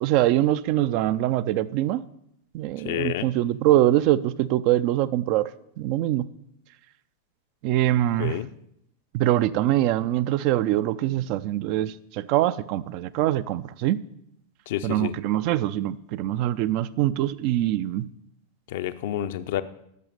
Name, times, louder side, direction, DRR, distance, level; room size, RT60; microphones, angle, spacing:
voice 1, 0.0-2.0 2.5-5.5 5.8-6.2 7.6-8.4 9.1-14.0 14.8-18.1, right 13 dB, 45° right, 15 dB, 0.4 m, -23 dB
voice 2, 2.8-3.2 8.2-8.5 14.7-15.1 18.7-19.6, left 12 dB, 55° left, 11 dB, 0.6 m, -29 dB
12.0 x 6.3 x 6.5 m, 0.77 s
figure-of-eight pair, 90°, 0 cm